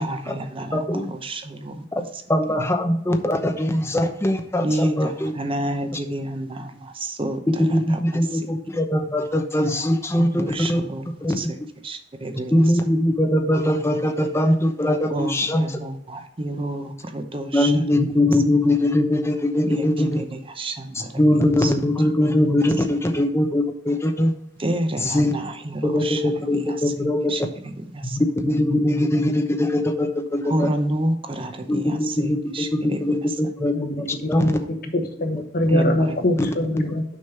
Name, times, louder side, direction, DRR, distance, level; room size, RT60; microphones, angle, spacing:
voice 1, 0.0-2.2 4.6-8.8 10.2-11.6 11.8-12.8 15.1-17.8 18.3-18.4 19.6-21.7 22.8-22.9 24.6-28.2 30.4-33.4 34.4-34.5 35.6-36.4 36.7-36.9, right 1 dB, 30° right, 6 dB, 0.7 m, -30 dB
voice 2, 0.7-1.1 1.9-2.0 2.3-5.3 7.6-10.8 11.2-11.5 12.5-15.6 17.5-20.2 21.2-24.3 25.1-25.3 25.8-27.3 28.1-30.7 31.7-33.7 34.3-34.6 36.8-36.9, left 1 dB, 15° left, 5 dB, 0.9 m, -21 dB
voice 3, 33.7-34.6 34.9-37.0, left 1 dB, 55° left, 5 dB, 1.2 m, -23 dB
6.4 x 5.3 x 5.7 m, 0.70 s
head